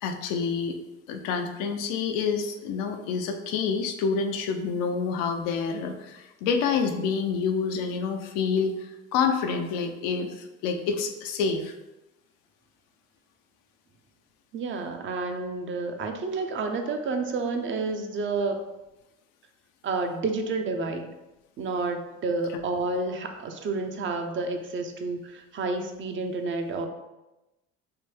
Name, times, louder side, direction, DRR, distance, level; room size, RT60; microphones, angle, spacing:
voice 1, 0.0-0.8 1.1-11.7, left 5 dB, 85° left, 6 dB, 0.5 m, -28 dB
voice 2, 14.5-18.6 19.8-21.1 21.6-26.9, right 3 dB, 40° right, 5 dB, 0.5 m, -30 dB
3.2 x 2.1 x 3.1 m, 1.0 s
supercardioid pair, 85°, 31 cm